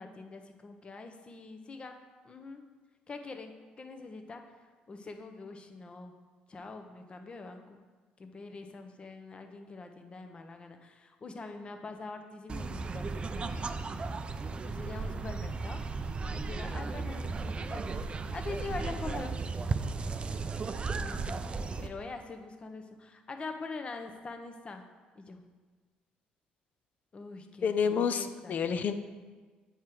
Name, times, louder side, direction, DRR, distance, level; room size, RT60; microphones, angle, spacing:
voice 1, 0.0-2.0 2.2-2.6 3.1-3.5 3.8-4.6 4.9-6.1 6.5-7.8 8.2-13.6 14.6-19.3 20.9-24.8 25.1-25.4 27.1-28.6, left 3 dB, 35° left, 6 dB, 0.8 m, -44 dB
sound 1, 12.5-21.9, right 4 dB, 30° right, 0.4 m, -35 dB
voice 2, 27.6-28.9, left 6 dB, 55° left, 10 dB, 0.5 m, -29 dB
8.1 x 4.9 x 4.5 m, 1.4 s
cardioid pair, 85°, 3 cm